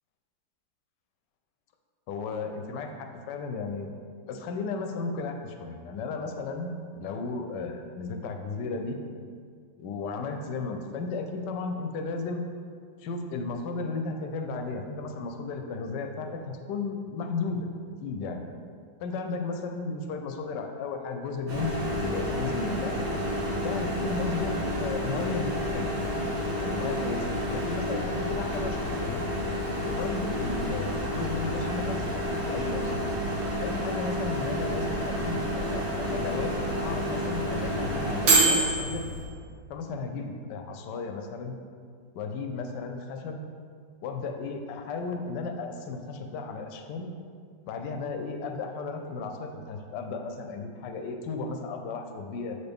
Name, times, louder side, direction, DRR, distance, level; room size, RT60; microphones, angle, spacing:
voice 1, 2.1-3.9 4.3-9.0 9.8-12.4 13.0-17.7 18.0-18.4 19.0-22.9 23.6-25.9 26.6-29.3 29.8-32.1 32.4-33.0 33.6-39.1 39.7-41.6 42.1-43.4 44.0-47.1 47.7-52.6, left 4 dB, 90° left, 4 dB, 1.2 m, -34 dB
Microwave oven, 21.5-39.2, equal, 85° right, 2.1 m, -29 dB
7.1 x 4.1 x 3.4 m, 2.1 s
omnidirectional pair, 1.8 m